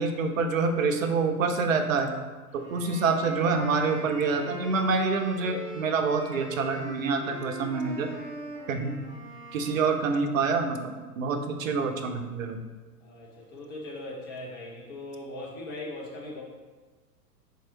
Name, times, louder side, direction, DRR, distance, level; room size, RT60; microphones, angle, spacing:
voice 1, 0.0-2.1 2.5-8.1 8.7-8.9 9.5-12.6, right 4 dB, 55° right, 6 dB, 0.6 m, -27 dB
voice 2, 2.5-2.9 13.0-16.4, left 2 dB, 15° left, -4 dB, 0.4 m, -40 dB
sound 1, 2.6-10.0, right 1 dB, 10° right, 1.1 m, -41 dB
4.7 x 3.0 x 2.9 m, 1.3 s
figure-of-eight pair, 100°, 48 cm